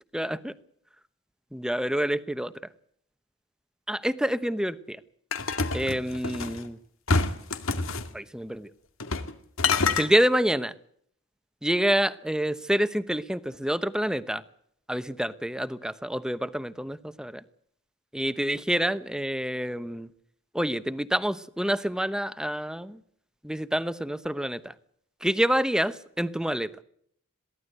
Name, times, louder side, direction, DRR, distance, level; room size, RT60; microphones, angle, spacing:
voice 1, 0.1-0.5 1.5-2.5 3.9-5.0 5.7-6.8 8.1-8.7 9.9-10.7 11.6-14.4 14.9-17.4 18.1-20.1 20.5-23.0 23.4-24.7 25.2-26.7, equal, 5° right, 14 dB, 0.9 m, -27 dB
sound 1, 5.3-6.6 7.1-8.1 9.0-9.3 9.6-10.1, left 4 dB, 85° left, 2.1 m, -26 dB
22.5 x 16.5 x 8.0 m, 0.67 s
head